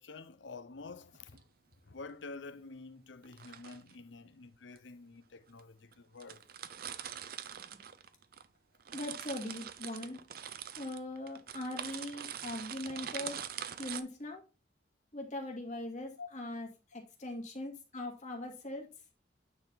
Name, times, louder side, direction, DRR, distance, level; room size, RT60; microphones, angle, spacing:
voice 1, 0.0-1.4 1.8-6.4 12.9-13.0 16.2-16.3, left 3 dB, 75° left, 0.7 m, -48 dB
sound 1, 1.1-1.4 3.2-3.9 4.8-4.9 5.6-5.7 5.9-6.0 6.2-8.5 8.7-14.0, right 9 dB, 55° right, 0.6 m, -43 dB
voice 2, 8.9-10.2 10.8-14.4 15.1-18.9, left 1 dB, 40° left, 2.1 m, -41 dB
9.0 x 4.2 x 4.0 m
head